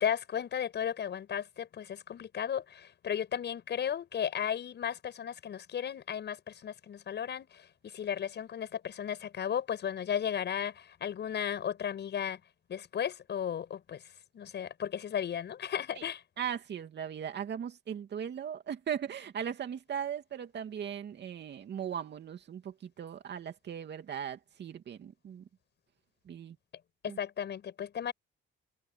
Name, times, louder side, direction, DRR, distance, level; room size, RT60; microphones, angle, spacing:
voice 1, 0.0-12.4 12.7-14.0 14.3-16.2 27.0-28.1, left 8 dB, 60° left, 6.7 m, -35 dB
voice 2, 16.4-25.4 26.3-26.6 27.1-27.2, right 8 dB, 60° right, 2.7 m, -38 dB
cardioid pair, 90°, 20 cm